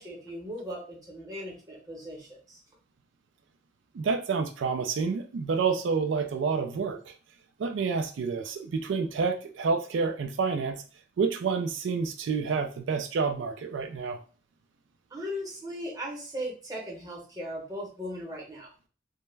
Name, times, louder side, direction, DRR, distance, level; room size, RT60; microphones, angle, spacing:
voice 1, 0.0-2.6 15.1-18.7, equal, 20° right, -3 dB, 0.8 m, -38 dB
voice 2, 3.9-7.1 7.6-10.8 11.2-14.2, right 5 dB, 85° right, 6 dB, 0.3 m, -29 dB
2.2 x 2.1 x 3.2 m, 0.37 s
head